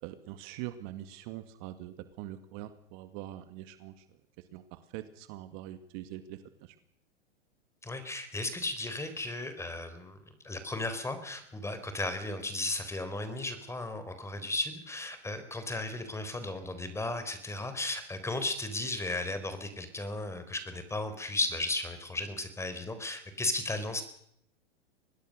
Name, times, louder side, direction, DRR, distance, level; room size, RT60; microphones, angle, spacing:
voice 1, 0.0-4.1 4.5-6.8, right 13 dB, 45° right, 10 dB, 2.1 m, -43 dB
voice 2, 7.8-10.2 10.4-24.0, left 2 dB, 5° left, 10 dB, 4.0 m, -35 dB
25.0 x 20.0 x 6.6 m, 0.71 s
hypercardioid pair, 130°, 36 cm